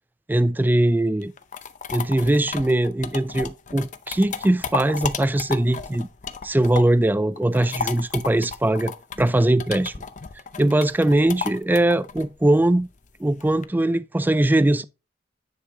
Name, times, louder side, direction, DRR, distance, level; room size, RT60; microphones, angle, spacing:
voice 1, 0.3-1.3 1.9-6.1 6.4-8.9 9.2-9.9 10.6-12.9 13.2-14.8, right 1 dB, 10° right, 0.3 m, -21 dB
sound 1, 1.2-7.0 7.4-13.6, left 6 dB, 45° left, 0.6 m, -33 dB
9.8 x 5.4 x 2.8 m
head